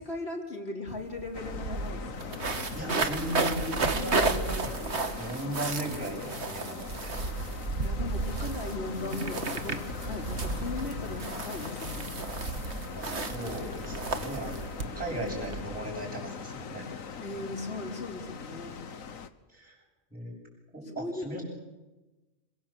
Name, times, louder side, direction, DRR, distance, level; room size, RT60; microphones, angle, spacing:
voice 1, 0.0-2.5 3.9-4.3 7.6-12.1 17.2-18.8 20.9-21.3, left 2 dB, 50° left, 2 dB, 3.9 m, -38 dB
sound 1, 0.9-1.0 1.2-15.6, right 3 dB, 55° right, 2.0 m, -33 dB
sound 2, 1.3-19.3, left 6 dB, 85° left, 1.7 m, -41 dB
voice 2, 2.7-7.2 13.0-16.9 19.5-19.8 20.1-20.3 20.7-21.4, right 1 dB, 5° right, -5 dB, 8.0 m, -37 dB
27.5 x 23.5 x 7.7 m, 1.1 s
omnidirectional pair, 1.4 m